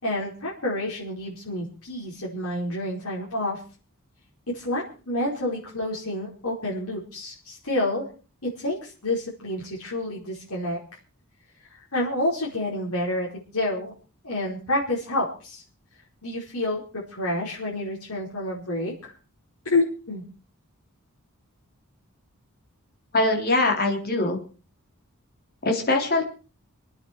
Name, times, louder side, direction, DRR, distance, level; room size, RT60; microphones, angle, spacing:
voice 1, 0.0-3.6 4.5-8.1 8.4-10.8 11.7-13.9 14.2-15.6 16.2-19.1 19.7-20.2, left 1 dB, 80° left, -5 dB, 4.9 m, -29 dB
voice 2, 23.1-24.4 25.6-26.2, left 2 dB, 45° left, 2 dB, 3.5 m, -22 dB
28.0 x 9.8 x 4.6 m, 0.38 s
head